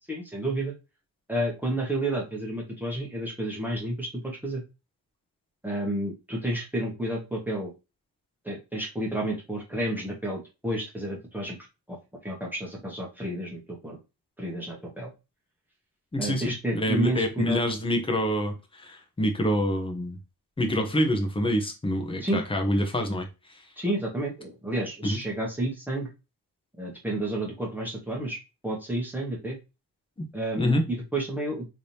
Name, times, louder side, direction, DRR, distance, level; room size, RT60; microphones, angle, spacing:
voice 1, 0.1-0.7 1.3-4.6 5.6-7.7 8.4-11.6 11.9-12.0 12.2-14.0 14.4-15.1 16.2-17.6 22.2-22.4 23.8-26.1 26.8-29.6 30.3-31.7, right 1 dB, 5° right, 1.4 m, -30 dB
voice 2, 16.1-16.4 16.7-20.2 20.6-23.3 25.0-25.2 30.2-30.3 30.5-30.8, equal, 15° left, 1.0 m, -26 dB
3.7 x 3.3 x 2.8 m
cardioid pair, 125°, 41 cm